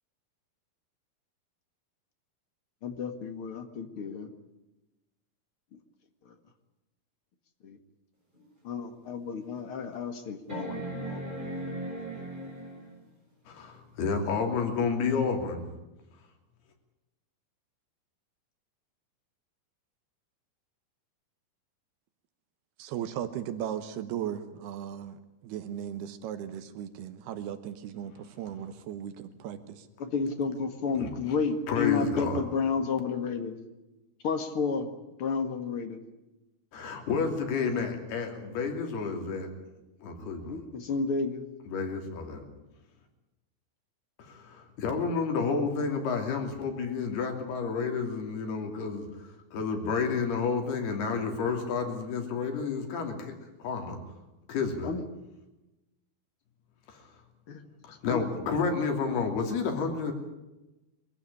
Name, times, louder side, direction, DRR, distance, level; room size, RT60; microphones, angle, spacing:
voice 1, 2.8-4.3 7.6-7.8 8.6-11.3 30.0-33.6 34.2-34.9 35.2-36.0 40.2-41.4 54.8-55.0 57.5-57.6 58.1-58.3, left 5 dB, 45° left, 7 dB, 2.1 m, -31 dB
sound 1, 8.3-8.4 9.0-9.1 10.5-13.0 14.7-14.8, right 1 dB, 10° right, 7.0 m, -37 dB
voice 2, 13.5-15.7 31.0-31.1 31.7-32.4 36.7-39.5 40.0-40.6 41.7-42.4 44.2-49.1 49.5-53.3 53.6-54.0 54.5-54.9 56.9-57.0 57.9-60.1, left 5 dB, 85° left, 4 dB, 4.9 m, -30 dB
voice 3, 22.8-29.9, right 10 dB, 85° right, 10 dB, 3.2 m, -37 dB
23.5 x 15.0 x 10.0 m, 0.99 s
omnidirectional pair, 4.4 m